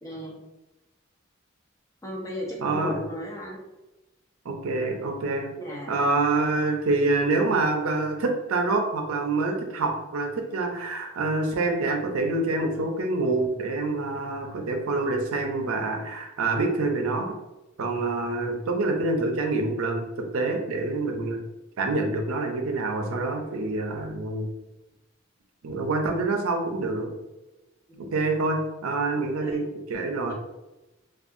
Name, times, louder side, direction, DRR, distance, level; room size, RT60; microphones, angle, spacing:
voice 1, 0.0-0.4 2.0-3.6 5.6-6.0 27.9-28.1 29.4-29.7 30.3-30.4, equal, 15° left, -3 dB, 0.5 m, -36 dB
voice 2, 2.6-3.0 4.4-5.5 5.9-17.3 17.8-21.4 21.8-24.5 25.6-27.1 28.0-29.6 29.9-30.3, right 3 dB, 90° right, 3 dB, 0.5 m, -26 dB
2.6 x 2.3 x 2.5 m, 1.0 s
head